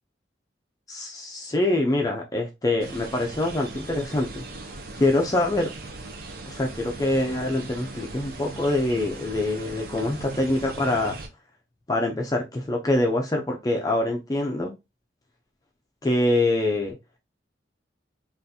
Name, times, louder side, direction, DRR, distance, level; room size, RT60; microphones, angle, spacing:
voice 1, 0.9-4.4 5.0-5.7 6.5-11.2 11.9-14.7 16.0-17.0, left 2 dB, 20° left, 1 dB, 0.4 m, -25 dB
sound 1, 2.8-11.3, right 2 dB, 50° right, 0.6 m, -39 dB
3.7 x 2.4 x 2.6 m, 0.23 s
head